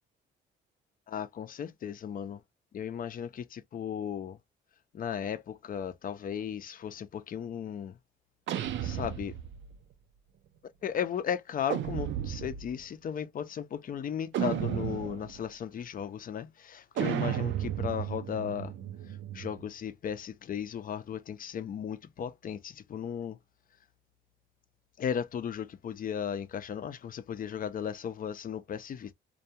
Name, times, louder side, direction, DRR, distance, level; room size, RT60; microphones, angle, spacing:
voice 1, 1.1-2.4 2.7-4.4 4.9-8.0 8.8-9.4 10.8-18.7 19.1-23.4 25.0-29.1, left 8 dB, 45° left, 0.5 m, -36 dB
sound 1, 8.5-9.8 11.7-12.8 14.3-15.4 17.0-19.7, right 11 dB, 70° right, 0.5 m, -33 dB
2.3 x 2.2 x 2.7 m
cardioid pair, 90°, 20 cm